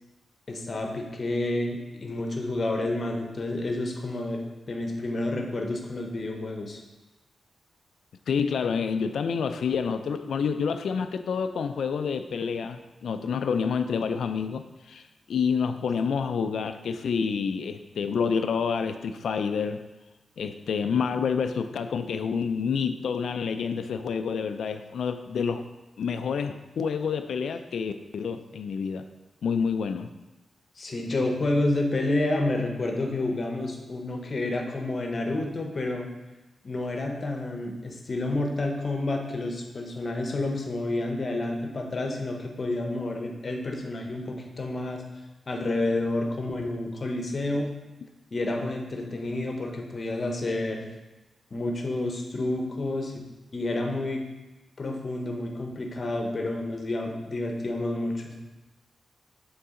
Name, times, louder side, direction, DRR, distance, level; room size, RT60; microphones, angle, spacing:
voice 1, 0.5-4.4 4.7-6.8 30.8-36.1 36.6-45.0 45.5-47.7 48.3-50.8 51.5-53.1 53.5-54.2 54.8-58.3, left 2 dB, 35° left, 2 dB, 0.8 m, -29 dB
voice 2, 8.3-19.8 20.4-25.6 26.0-29.1 29.4-30.1, left 6 dB, 75° left, 9 dB, 0.3 m, -28 dB
6.9 x 3.9 x 3.7 m, 1.1 s
wide cardioid pair, 165°, 0 cm